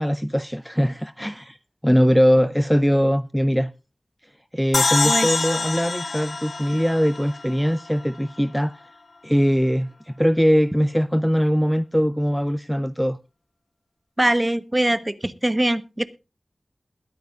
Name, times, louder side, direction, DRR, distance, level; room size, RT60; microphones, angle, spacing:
voice 1, 0.0-1.6 1.8-3.7 4.2-8.9 9.2-13.2, equal, ahead, 0.5 m, -21 dB
sound 1, 4.7-8.0, left 3 dB, 70° left, 0.6 m, -25 dB
voice 2, 14.2-16.0, right 1 dB, 20° right, 1.0 m, -22 dB
21.5 x 9.3 x 2.4 m
wide cardioid pair, 80°, 0 cm